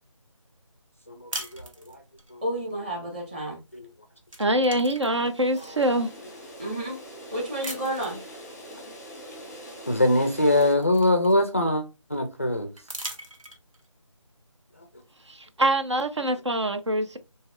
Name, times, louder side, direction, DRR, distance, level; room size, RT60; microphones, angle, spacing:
voice 1, 1.1-2.0 2.3-2.4 3.7-3.9 5.6-5.8 9.9-11.8 12.1-12.7 14.8-14.9, left 1 dB, 25° left, 0.4 m, -23 dB
sound 1, 1.3-2.3 3.7-3.9 4.2-5.9 6.5-6.6 7.6-8.2 9.7-9.8 10.1-11.7 12.8-13.9, right 1 dB, 80° right, 1.4 m, -40 dB
voice 2, 2.4-3.6 6.6-7.0 7.3-8.2, right 1 dB, 20° right, 1.3 m, -31 dB
voice 3, 4.4-6.1 15.3-17.2, right 1 dB, 60° right, 0.6 m, -24 dB
sound 2, 4.8-10.7, equal, 5° left, 0.9 m, -44 dB
6.0 x 2.8 x 2.4 m
figure-of-eight pair, 160°, 17 cm